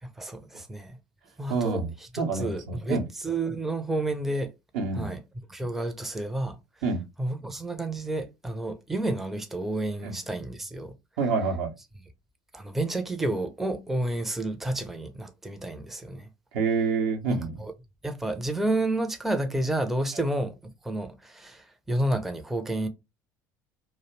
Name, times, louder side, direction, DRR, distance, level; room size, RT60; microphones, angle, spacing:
voice 1, 0.0-1.0 1.4-4.5 4.9-5.2 5.5-6.6 7.2-10.9 12.5-16.3 17.3-17.7 18.0-22.9, right 1 dB, 5° right, 0.4 m, -30 dB
voice 2, 1.5-1.9 2.2-3.0 4.7-5.1 6.8-7.0 10.0-10.1 11.2-11.7 16.5-17.6, right 4 dB, 70° right, 0.7 m, -27 dB
2.4 x 2.0 x 2.9 m
hypercardioid pair, 70°, 10 cm